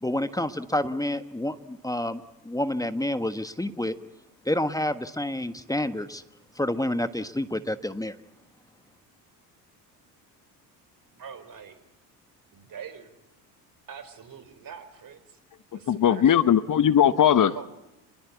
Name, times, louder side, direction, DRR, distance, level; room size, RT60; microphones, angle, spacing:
voice 1, 0.0-3.9 4.4-6.2 6.5-8.1, left 1 dB, 5° left, 10 dB, 1.4 m, -29 dB
voice 2, 11.1-11.8 12.5-13.1 13.9-15.4 15.7-16.4 17.5-17.6, right 7 dB, 40° right, 11 dB, 4.6 m, -43 dB
voice 3, 15.9-17.6, left 9 dB, 40° left, 13 dB, 1.3 m, -19 dB
28.5 x 22.0 x 8.4 m, 0.92 s
hypercardioid pair, 65°, 49 cm